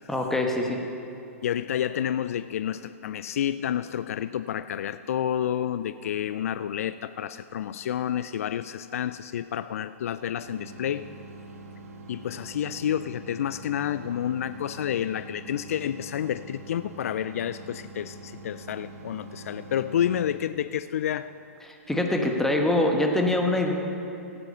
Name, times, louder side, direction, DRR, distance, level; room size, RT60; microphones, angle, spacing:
voice 1, 0.1-0.8 21.6-23.7, left 1 dB, 5° left, 1 dB, 1.3 m, -24 dB
voice 2, 1.4-11.1 12.1-21.3, left 10 dB, 70° left, 13 dB, 0.3 m, -29 dB
sound 1, 10.4-20.4, right 3 dB, 75° right, 1.8 m, -44 dB
16.5 x 8.1 x 5.5 m, 2.8 s
hypercardioid pair, 120°, 8 cm